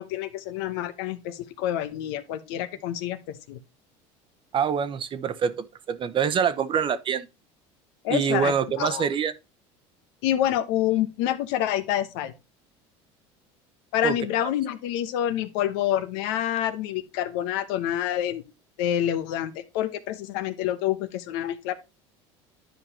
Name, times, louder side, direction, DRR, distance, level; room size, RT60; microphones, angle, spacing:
voice 1, 0.0-3.6 8.0-9.1 10.2-12.3 13.9-18.4 18.8-21.7, left 11 dB, 80° left, 1.0 m, -27 dB
voice 2, 4.5-7.3 8.1-9.3 14.0-14.1, right 7 dB, 40° right, 0.9 m, -25 dB
10.5 x 5.1 x 2.8 m
supercardioid pair, 95°, 13 cm